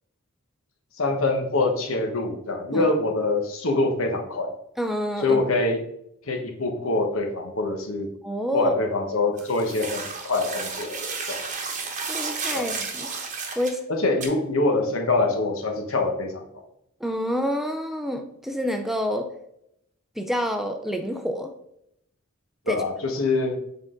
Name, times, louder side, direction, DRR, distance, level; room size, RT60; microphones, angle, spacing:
voice 1, 1.0-4.6 5.2-5.8 6.3-8.1 8.5-11.0 11.3-11.4 12.5-12.7 13.9-16.4 22.7-23.6, left 2 dB, 75° left, 3 dB, 1.1 m, -24 dB
voice 2, 4.8-5.4 8.2-8.7 12.1-13.1 13.6-13.8 17.0-19.3 20.2-21.5 22.7-22.8, equal, ahead, 5 dB, 0.4 m, -28 dB
sound 1, 9.4-13.8 14.2-14.3, right 4 dB, 35° right, 1.0 m, -32 dB
7.3 x 3.9 x 3.7 m, 0.76 s
head